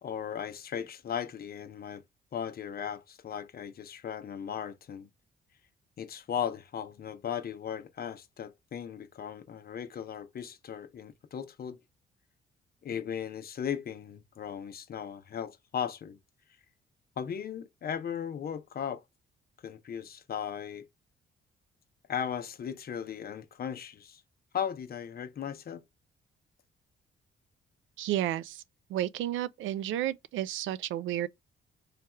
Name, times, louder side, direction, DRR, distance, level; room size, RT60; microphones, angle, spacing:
voice 1, 0.0-2.0 2.3-5.1 6.0-11.8 12.8-16.2 17.2-19.0 19.6-20.9 22.1-24.2 24.5-25.8, left 8 dB, 50° left, 0.7 m, -37 dB
voice 2, 28.0-28.6 28.9-31.3, right 12 dB, 80° right, 0.4 m, -32 dB
3.3 x 2.3 x 4.3 m
cardioid pair, 90°, 20 cm